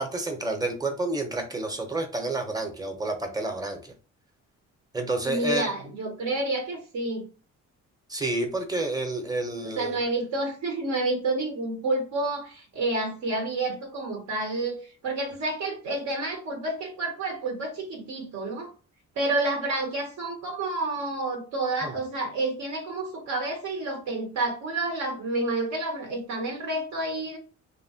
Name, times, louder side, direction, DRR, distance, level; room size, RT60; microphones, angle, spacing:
voice 1, 0.0-3.9 4.9-5.7 8.1-10.0 21.8-21.9, right 2 dB, 10° right, 4 dB, 0.7 m, -29 dB
voice 2, 5.2-7.3 9.6-18.7 19.2-27.4, right 2 dB, 65° right, 3 dB, 0.8 m, -29 dB
2.8 x 2.2 x 2.7 m, 0.37 s
cardioid pair, 90°, 30 cm